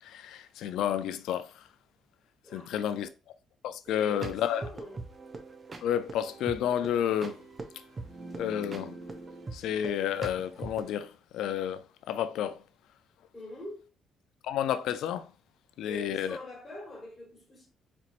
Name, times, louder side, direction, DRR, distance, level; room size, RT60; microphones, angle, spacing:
voice 1, 0.0-1.7 2.5-3.1 3.6-4.6 5.8-7.4 8.4-9.0 9.5-12.6 14.4-15.3 15.8-16.4, left 10 dB, 70° left, 0.3 m, -31 dB
voice 2, 2.4-3.0 3.9-5.0 13.3-13.8 15.9-17.7, left 1 dB, 15° left, 1.4 m, -44 dB
sound 1, 3.9-10.9, right 3 dB, 20° right, 0.4 m, -43 dB
4.2 x 2.9 x 2.5 m
cardioid pair, 175°, 0 cm